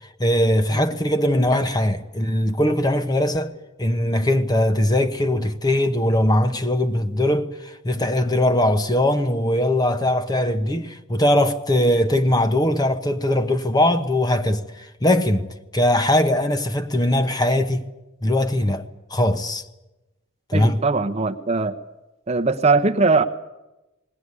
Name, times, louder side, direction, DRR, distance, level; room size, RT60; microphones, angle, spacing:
voice 1, 0.2-3.5 3.8-15.5 15.7-17.9 18.2-19.7 20.5-20.8, left 1 dB, 20° left, 1.0 m, -20 dB
voice 2, 20.5-21.7 22.3-23.2, right 3 dB, 30° right, 0.8 m, -20 dB
20.0 x 18.0 x 9.7 m
head